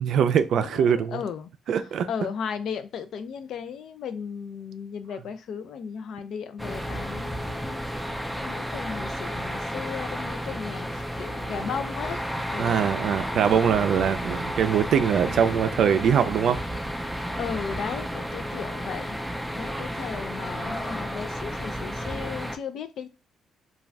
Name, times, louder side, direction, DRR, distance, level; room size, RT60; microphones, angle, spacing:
voice 1, 0.0-1.2 1.7-2.1 12.6-16.6, right 8 dB, 70° right, 0.3 m, -22 dB
voice 2, 0.5-1.5 2.1-7.9 8.4-12.2 12.5-12.8 17.4-19.2 19.5-23.1, left 7 dB, 70° left, 0.4 m, -35 dB
sound 1, 6.6-22.6, equal, ahead, 0.4 m, -32 dB
2.5 x 2.3 x 3.2 m
cardioid pair, 90°, 0 cm